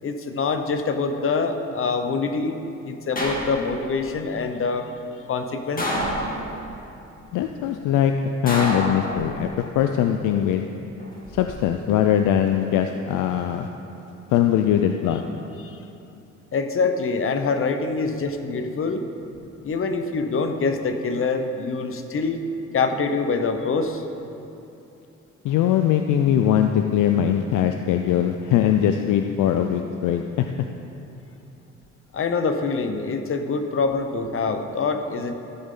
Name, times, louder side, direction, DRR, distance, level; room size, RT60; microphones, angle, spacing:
voice 1, 0.0-2.6 2.8-4.9 5.3-5.9 15.6-15.8 16.5-19.1 19.6-22.4 22.7-24.0 32.1-35.3, left 4 dB, 45° left, 7 dB, 0.9 m, -25 dB
sound 1, 3.2-3.9 5.8-6.7 8.5-9.6 11.0-11.5, equal, 30° left, 2.0 m, -28 dB
voice 2, 7.3-8.1 8.4-10.7 11.3-13.7 14.3-15.2 25.4-30.5, left 10 dB, 85° left, 6 dB, 0.5 m, -21 dB
14.0 x 8.0 x 3.8 m, 2.8 s
cardioid pair, 90°, 30 cm